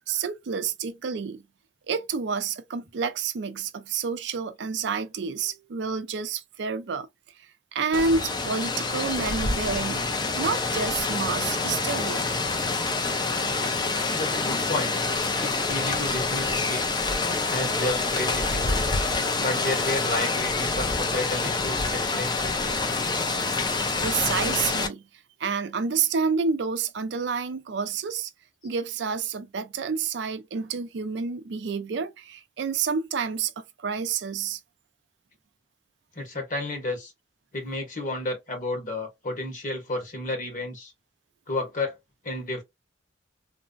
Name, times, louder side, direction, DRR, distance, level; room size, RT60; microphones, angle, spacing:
voice 1, 0.0-1.4 1.9-7.1 7.7-12.3 24.0-25.1 25.4-28.3 28.6-34.6, right 5 dB, 65° right, 0.4 m, -29 dB
Rain, 7.9-24.9, left 3 dB, 25° left, 0.5 m, -27 dB
voice 2, 14.1-14.9 15.4-16.8 17.5-18.9 19.4-22.3 36.1-37.1 37.5-40.9 41.5-42.0 42.2-42.6, left 2 dB, 45° left, 1.4 m, -31 dB
3.2 x 2.0 x 2.4 m
head